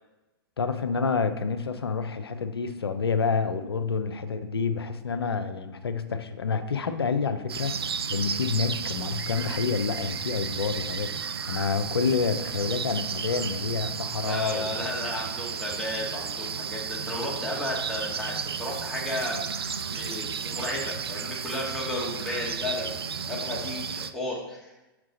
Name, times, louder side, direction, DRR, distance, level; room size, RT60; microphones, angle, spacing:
voice 1, 0.6-14.8, left 5 dB, 90° left, 9 dB, 0.6 m, -28 dB
sound 1, 7.5-24.1, right 6 dB, 85° right, 0.4 m, -33 dB
voice 2, 14.2-24.7, left 1 dB, 5° left, -5 dB, 2.1 m, -34 dB
6.5 x 4.7 x 3.8 m, 1.0 s
hypercardioid pair, 115°, 13 cm